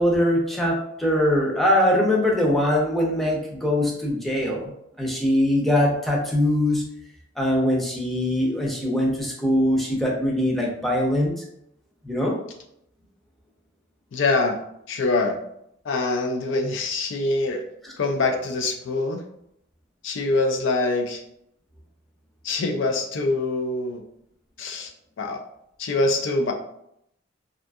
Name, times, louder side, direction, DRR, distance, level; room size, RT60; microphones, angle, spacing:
voice 1, 0.0-4.7 5.0-6.8 7.4-11.4 12.0-12.3 17.8-17.9, left 1 dB, ahead, -3 dB, 0.5 m, -22 dB
voice 2, 14.1-14.6 14.9-15.4 15.8-17.6 18.0-19.2 20.0-21.2 22.4-24.0 24.6-24.9 25.2-25.4 25.8-26.5, left 2 dB, 80° left, 4 dB, 0.4 m, -24 dB
2.6 x 2.5 x 2.3 m, 0.76 s
head